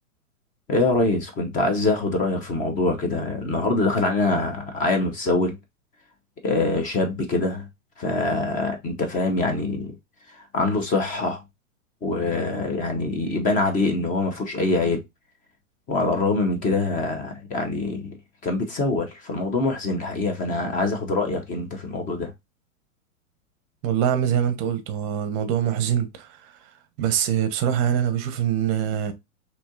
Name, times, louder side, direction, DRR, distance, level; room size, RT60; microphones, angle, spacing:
voice 1, 0.7-5.6 6.4-7.7 8.0-10.0 10.3-11.4 12.0-15.0 15.9-18.2 18.4-22.3, left 2 dB, 20° left, 0.7 m, -24 dB
voice 2, 23.8-26.6 27.0-29.1, right 9 dB, 30° right, 0.7 m, -24 dB
4.2 x 2.8 x 2.4 m
hypercardioid pair, 130°, 41 cm